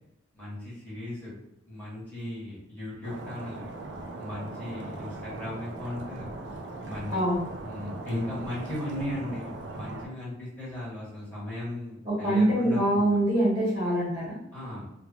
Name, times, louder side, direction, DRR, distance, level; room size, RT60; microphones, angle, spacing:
voice 1, 0.3-1.3 1.7-3.6 4.2-6.3 6.8-7.1 7.6-12.8 13.1-13.2 14.5-14.9, left 1 dB, 10° left, -10 dB, 1.3 m, -36 dB
Stream, 3.0-10.1, right 2 dB, 70° right, 0.5 m, -39 dB
voice 2, 12.0-14.4, right 1 dB, 25° right, -7 dB, 1.1 m, -24 dB
2.7 x 2.6 x 2.3 m, 0.88 s
head